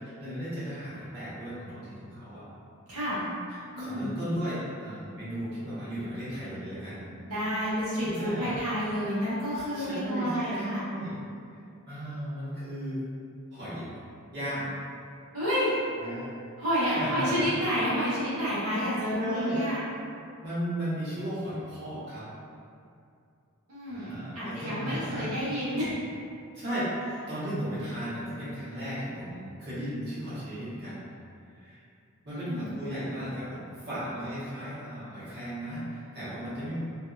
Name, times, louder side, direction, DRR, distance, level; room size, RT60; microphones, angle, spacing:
voice 1, 0.0-2.4 3.8-7.0 8.0-8.6 9.7-11.2 11.9-13.0 13.5-13.9 14.3-14.7 16.0-16.3 16.8-17.5 18.6-18.8 19.2-19.6 20.4-22.3 23.9-25.4 26.5-31.0 31.5-31.8 32.2-36.8, equal, 50° right, -12 dB, 1.2 m, -35 dB
voice 2, 2.9-3.2 3.7-4.1 7.2-10.8 15.3-15.7 16.6-19.8 23.7-26.0 32.3-32.7, equal, 75° right, -10 dB, 1.1 m, -30 dB
2.7 x 2.3 x 2.3 m, 2.4 s
head